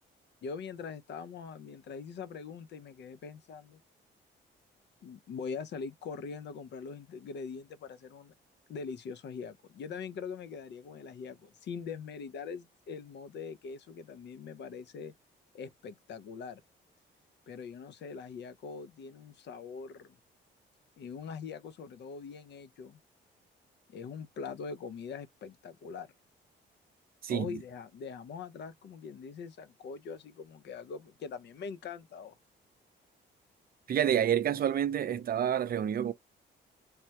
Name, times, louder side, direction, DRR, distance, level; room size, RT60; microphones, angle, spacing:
voice 1, 0.4-3.8 5.0-8.3 8.7-15.1 15.5-16.6 17.5-20.2 21.0-23.0 23.9-26.1 27.3-32.4, left 5 dB, 60° left, 0.6 m, -42 dB
voice 2, 27.2-27.6 33.9-36.1, right 9 dB, 50° right, 0.5 m, -28 dB
3.4 x 2.1 x 2.8 m
cardioid pair, 90°, 20 cm